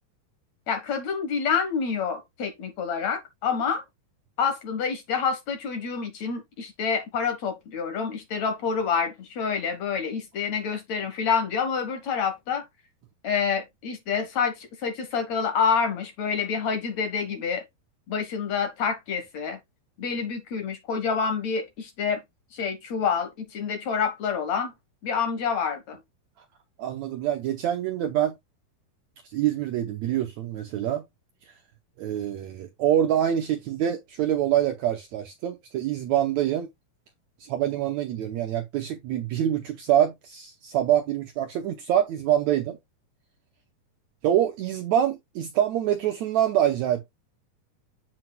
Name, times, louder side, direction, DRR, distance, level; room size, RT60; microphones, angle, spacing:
voice 1, 0.7-3.8 4.4-12.6 13.2-17.6 18.1-19.6 20.0-22.2 22.5-24.7 25.0-26.0, left 6 dB, 60° left, 2.2 m, -27 dB
voice 2, 26.8-28.4 29.3-31.1 32.0-36.7 37.4-42.8 44.2-47.1, right 11 dB, 75° right, 1.8 m, -25 dB
7.6 x 7.6 x 2.2 m
omnidirectional pair, 4.1 m